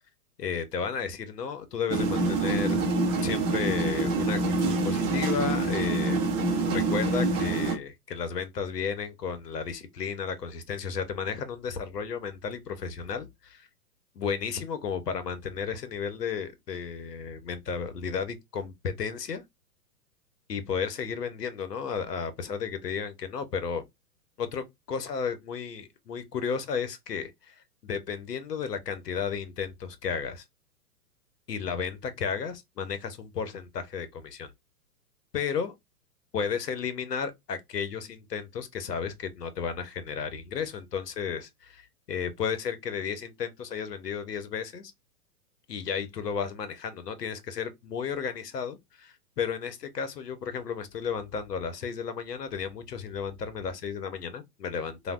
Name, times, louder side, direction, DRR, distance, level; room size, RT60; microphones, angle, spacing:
voice 1, 0.4-2.8 3.2-6.2 6.7-13.7 14.2-19.4 20.5-23.8 24.4-30.4 31.5-34.5 35.3-35.7 36.3-44.9 45.7-55.1, left 6 dB, 85° left, 0.9 m, -33 dB
sound 1, 1.9-7.7, right 3 dB, 15° right, 0.4 m, -26 dB
3.3 x 2.2 x 2.3 m
hypercardioid pair, 120°, 47 cm